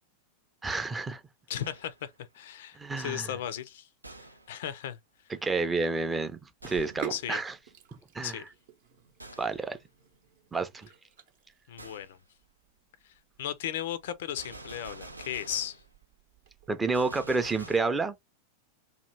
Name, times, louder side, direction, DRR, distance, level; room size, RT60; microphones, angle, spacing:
voice 1, 0.6-1.2 2.8-3.3 5.3-7.5 8.1-8.4 9.4-9.8 10.5-10.9 16.7-18.2, right 3 dB, 15° right, 0.5 m, -30 dB
voice 2, 1.5-3.9 4.5-5.0 7.1-7.4 8.2-8.4 11.7-12.2 13.0-15.8, left 10 dB, 55° left, 0.3 m, -36 dB
Gunshot gunfire, 1.6-2.1 4.0-4.6 6.6-7.1 9.2-9.6 11.8-12.1 14.4-15.9 16.9-17.8, right 2 dB, 85° right, 0.4 m, -47 dB
Sink (filling or washing), 6.6-17.4, right 10 dB, 55° right, 0.7 m, -48 dB
2.9 x 2.3 x 3.2 m
figure-of-eight pair, 90°, 0 cm